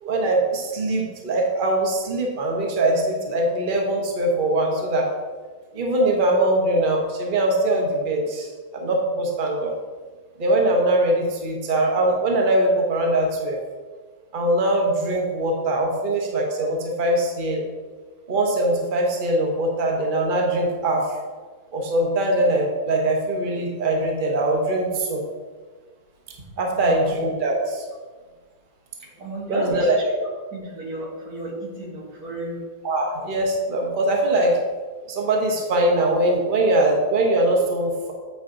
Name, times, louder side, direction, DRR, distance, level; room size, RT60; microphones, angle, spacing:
voice 1, 0.0-5.1 5.7-9.7 10.4-13.6 14.3-17.6 18.3-21.1 21.7-25.2 26.6-27.8 29.5-30.2 32.8-34.6 35.1-38.1, right 1 dB, 40° right, 0 dB, 1.1 m, -22 dB
voice 2, 26.6-27.1 29.2-29.9 30.5-32.6, right 1 dB, 85° right, -4 dB, 2.3 m, -34 dB
8.5 x 5.0 x 3.8 m, 1.4 s
omnidirectional pair, 1.5 m